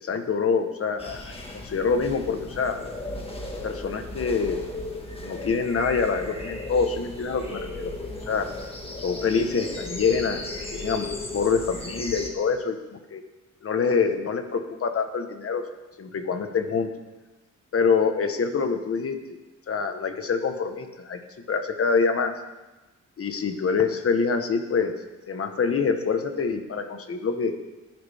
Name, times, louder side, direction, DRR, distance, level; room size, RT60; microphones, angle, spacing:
voice 1, 0.0-2.8 3.6-4.6 5.2-7.9 8.3-8.5 9.0-10.4 10.7-13.2 13.6-15.6 16.0-16.9 17.7-19.1 19.7-21.2 21.5-22.3 23.2-24.9 25.3-27.5, left 5 dB, 45° left, 7 dB, 1.3 m, -25 dB
sound 1, 1.0-12.3, left 2 dB, 20° left, 1.8 m, -36 dB
19.5 x 10.5 x 3.6 m, 1.1 s
wide cardioid pair, 145°, 31 cm